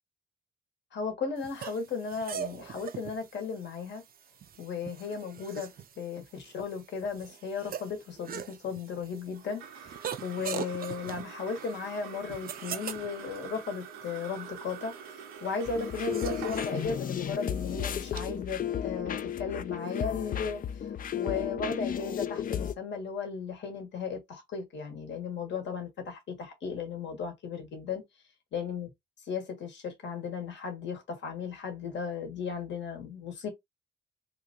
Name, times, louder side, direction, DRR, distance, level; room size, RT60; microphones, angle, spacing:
voice 1, 0.9-4.0 4.6-20.9 21.2-28.0 28.5-28.9 29.3-33.5, left 5 dB, 65° left, 1.4 m, -36 dB
sound 1, 1.4-18.2, right 8 dB, 50° right, 0.5 m, -43 dB
sound 2, 9.3-20.0, right 7 dB, 90° right, 0.8 m, -46 dB
sound 3, 15.7-22.7, left 9 dB, 45° left, 0.4 m, -34 dB
2.8 x 2.6 x 3.6 m
supercardioid pair, 60°, 20 cm